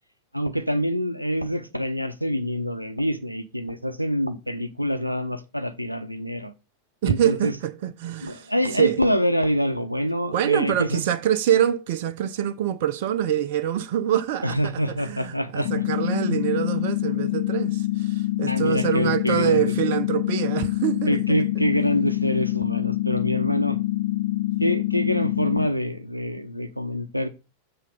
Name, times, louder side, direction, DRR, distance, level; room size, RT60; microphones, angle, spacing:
voice 1, 0.3-6.5 7.1-7.5 8.2-11.0 14.4-15.8 16.3-16.4 18.5-19.7 21.1-23.8 24.6-27.3, equal, 90° right, 0.7 m, -26 dB
voice 2, 7.0-8.5 8.8-9.0 10.3-14.7 15.1-21.2, right 11 dB, 50° right, 0.6 m, -25 dB
sound 1, 15.7-25.7, left 16 dB, 55° left, 0.4 m, -26 dB
7.5 x 3.9 x 5.2 m
figure-of-eight pair, 90°, 0 cm